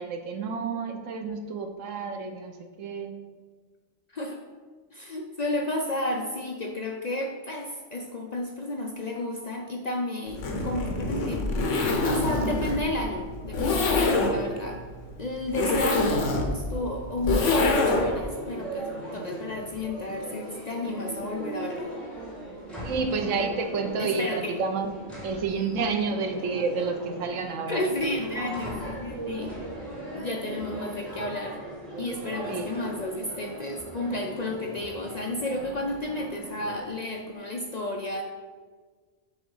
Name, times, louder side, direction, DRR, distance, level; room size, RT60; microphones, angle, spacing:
voice 1, 0.0-3.1 22.8-25.0 25.2-27.8 32.5-32.7, right 4 dB, 90° right, 6 dB, 1.1 m, -30 dB
voice 2, 4.9-14.8 15.2-22.0 24.0-24.5 27.7-29.5 30.1-31.6 32.0-38.2, left 1 dB, 50° left, 2 dB, 0.5 m, -32 dB
Zipper (clothing), 10.3-18.2, left 3 dB, 80° left, 1.3 m, -25 dB
sound 1, 17.3-36.9, right 1 dB, ahead, 1.7 m, -39 dB
6.9 x 3.5 x 5.4 m, 1.5 s
omnidirectional pair, 1.3 m